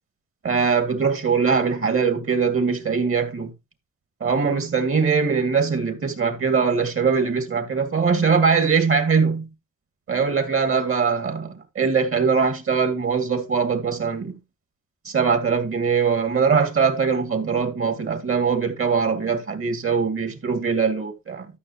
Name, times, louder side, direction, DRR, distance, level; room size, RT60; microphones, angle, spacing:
voice 1, 0.4-3.5 4.2-9.5 10.1-14.3 15.0-21.5, right 5 dB, 45° right, 2.6 m, -22 dB
13.0 x 6.3 x 3.1 m
cardioid pair, 90°, 30 cm